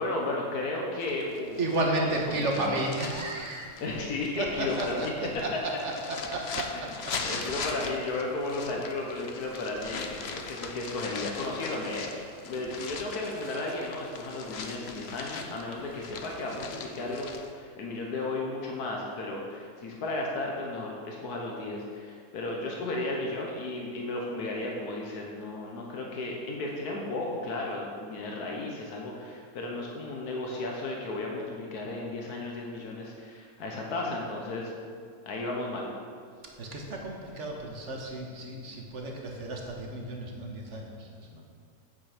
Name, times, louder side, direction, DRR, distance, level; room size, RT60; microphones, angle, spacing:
voice 1, 0.0-1.6 2.3-2.8 3.8-5.1 6.7-6.9 7.2-35.9, left 2 dB, 90° left, -1 dB, 1.6 m, -34 dB
sound 1, 1.0-17.5, left 5 dB, 55° left, 0.9 m, -40 dB
voice 2, 1.6-3.8 4.4-7.4 9.9-10.0 36.6-41.4, right 2 dB, 55° right, 0 dB, 1.6 m, -33 dB
9.0 x 7.8 x 5.0 m, 2.2 s
omnidirectional pair, 1.6 m